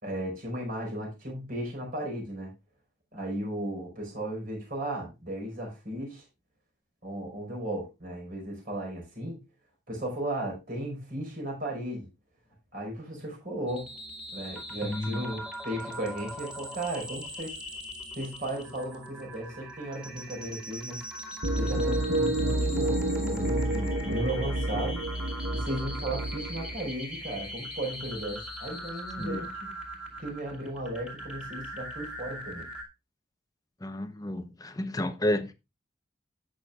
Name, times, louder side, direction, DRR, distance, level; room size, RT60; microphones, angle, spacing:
voice 1, 0.0-2.5 3.1-6.2 7.0-9.4 9.9-12.1 12.7-13.9 14.3-17.6 18.1-21.0 21.6-25.0 25.5-29.7 30.2-32.7, right 1 dB, 50° right, 4.8 m, -35 dB
sound 1, 13.7-32.8, equal, 5° right, 2.3 m, -41 dB
voice 2, 14.8-15.2 29.2-29.4 33.8-35.5, left 1 dB, 20° left, 0.8 m, -31 dB
sound 2, 21.4-26.7, right 1 dB, 90° right, 1.0 m, -29 dB
17.0 x 6.5 x 2.4 m
head